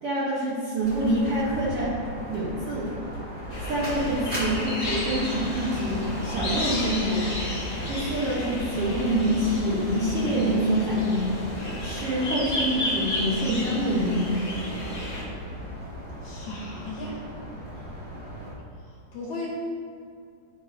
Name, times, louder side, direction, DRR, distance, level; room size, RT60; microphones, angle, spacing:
voice 1, 0.0-2.0 2.3-2.9 3.5-7.3 7.9-11.3 11.8-14.4, right 1 dB, 90° right, -7 dB, 1.2 m, -26 dB
sound 1, 0.8-18.5, equal, 45° right, 0.9 m, -37 dB
sound 2, 3.5-15.2, left 1 dB, 85° left, 0.5 m, -32 dB
voice 2, 16.2-17.2 19.1-19.5, left 2 dB, 70° left, -4 dB, 1.9 m, -35 dB
12.0 x 4.6 x 2.7 m, 2.4 s
omnidirectional pair, 4.3 m